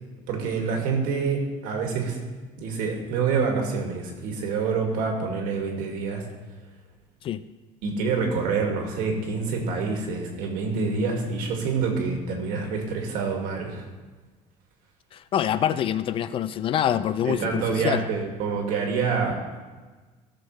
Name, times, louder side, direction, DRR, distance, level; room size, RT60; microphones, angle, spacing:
voice 1, 0.3-2.2 2.6-6.2 7.8-13.9 17.2-19.4, right 5 dB, 85° right, 1 dB, 2.0 m, -27 dB
voice 2, 15.1-18.0, left 10 dB, 40° left, 14 dB, 0.4 m, -25 dB
15.0 x 6.5 x 3.1 m, 1.3 s
cardioid pair, 140°, 14 cm